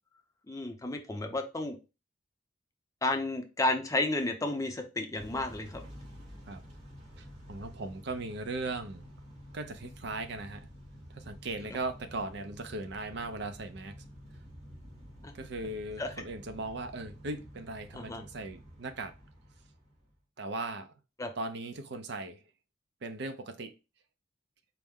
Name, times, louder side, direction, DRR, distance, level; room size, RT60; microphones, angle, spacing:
voice 1, 0.5-1.8 3.0-5.8 16.0-16.1 17.9-18.2 21.2-21.3, left 2 dB, 15° left, 0.6 m, -32 dB
Motor vehicle (road) / Engine starting / Accelerating revving vroom, 5.2-20.1, equal, 45° right, 2.2 m, -50 dB
voice 2, 7.2-9.1 9.5-10.7 11.1-13.9 15.3-19.1 20.4-20.9 21.4-22.4 23.0-23.7, right 2 dB, 65° right, 0.5 m, -38 dB
4.5 x 2.1 x 3.5 m
head